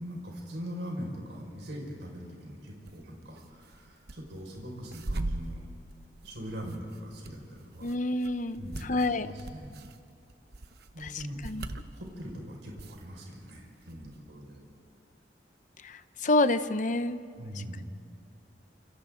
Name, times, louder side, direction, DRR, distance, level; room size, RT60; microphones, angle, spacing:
voice 1, 0.0-5.6 6.2-7.9 8.6-9.7 10.9-11.4 11.7-14.6 17.4-17.8, equal, 80° right, -1 dB, 5.4 m, -41 dB
sound 1, 2.9-3.0 3.4-4.2 4.5-12.3 12.8-13.5 13.8-14.2, right 2 dB, 65° right, 1.0 m, -40 dB
voice 2, 7.8-9.3 11.0-11.7 15.8-17.2, left 2 dB, 45° left, 11 dB, 0.8 m, -28 dB
29.5 x 28.0 x 3.9 m, 2.5 s
head